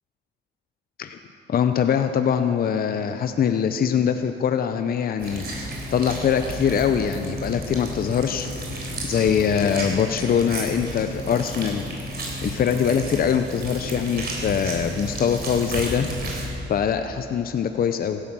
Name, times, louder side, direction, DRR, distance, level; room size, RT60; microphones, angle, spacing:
voice 1, 1.5-5.4 5.9-8.5 9.0-11.9 12.4-16.1 16.7-18.2, left 7 dB, 50° left, 8 dB, 0.6 m, -23 dB
sound 1, 5.2-16.5, equal, 55° right, 3.8 m, -32 dB
16.0 x 11.0 x 6.1 m, 3.0 s
cardioid pair, 90°, 20 cm